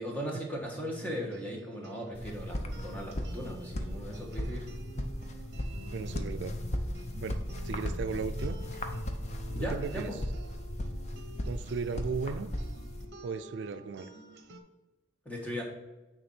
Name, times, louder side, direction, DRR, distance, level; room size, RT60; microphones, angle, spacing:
voice 1, 0.0-4.7 9.5-10.2 15.2-15.6, equal, 10° left, -1 dB, 1.3 m, -38 dB
sound 1, 0.7-14.6, right 1 dB, 60° right, 0.8 m, -49 dB
sound 2, 2.1-13.1, left 1 dB, 35° left, 0.6 m, -36 dB
voice 2, 5.9-6.6 7.2-7.4 7.6-8.6 9.6-10.1 11.4-12.5 13.2-14.1, right 5 dB, 80° right, 11 dB, 0.4 m, -36 dB
9.0 x 3.4 x 4.3 m, 1.1 s
head